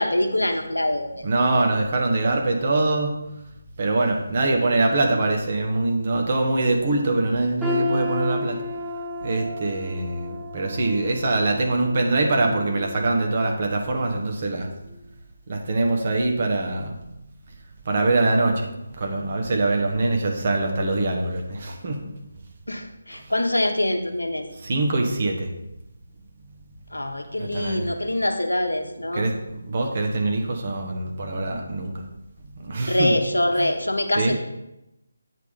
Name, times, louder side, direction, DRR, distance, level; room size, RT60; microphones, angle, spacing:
voice 1, 0.0-1.2 22.7-24.4 26.9-29.3 32.8-34.3, left 1 dB, 75° left, 4 dB, 1.1 m, -24 dB
voice 2, 1.2-3.1 3.8-8.6 9.2-14.7 15.5-17.0 17.8-18.7 19.0-22.0 24.6-25.5 27.4-27.8 29.1-29.3 29.7-32.0 32.6-33.1 33.5-33.7 34.1-34.3, right 2 dB, 40° right, 1 dB, 1.2 m, -23 dB
sound 1, 7.6-13.6 14.0-14.2 14.9-15.0, left 2 dB, ahead, 0.8 m, -32 dB
8.2 x 3.6 x 5.7 m, 0.90 s
figure-of-eight pair, 155°, 0 cm